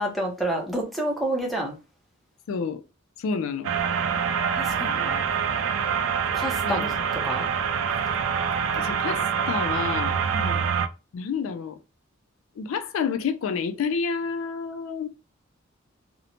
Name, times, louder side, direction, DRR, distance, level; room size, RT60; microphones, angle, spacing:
voice 1, 0.0-1.7 4.5-5.2 6.3-6.9 7.2-7.5 10.3-10.6, right 1 dB, ahead, 0.6 m, -29 dB
voice 2, 2.5-2.8 3.2-3.7 6.7-7.1 8.8-10.2 11.1-11.8 12.6-15.1, left 5 dB, 85° left, 0.4 m, -29 dB
sound 1, 3.6-10.9, right 7 dB, 85° right, 0.3 m, -25 dB
2.6 x 2.1 x 2.9 m
head